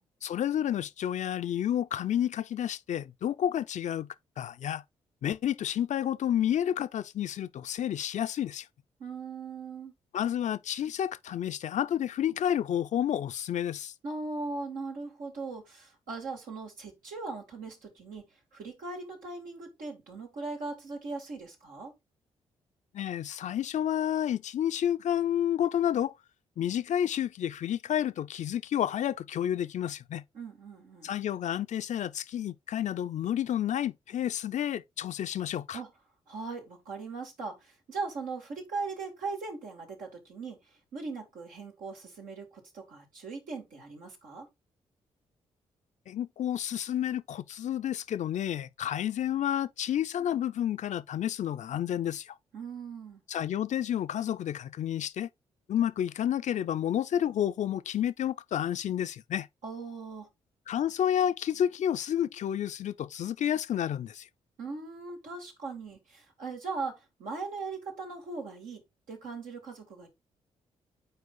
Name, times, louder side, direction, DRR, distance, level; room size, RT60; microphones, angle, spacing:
voice 1, 0.2-4.1 4.4-4.8 5.2-8.7 10.1-13.9 22.9-26.1 26.6-30.2 31.0-35.8 46.1-52.4 53.3-55.3 55.7-59.5 60.7-64.3, left 10 dB, 60° left, 0.5 m, -30 dB
voice 2, 9.0-9.9 14.0-21.9 30.3-31.1 35.7-35.9 36.3-44.5 52.5-53.2 59.6-60.3 64.6-68.8 69.1-70.1, right 4 dB, 70° right, 2.4 m, -39 dB
5.4 x 4.5 x 3.9 m
hypercardioid pair, 45°, 14 cm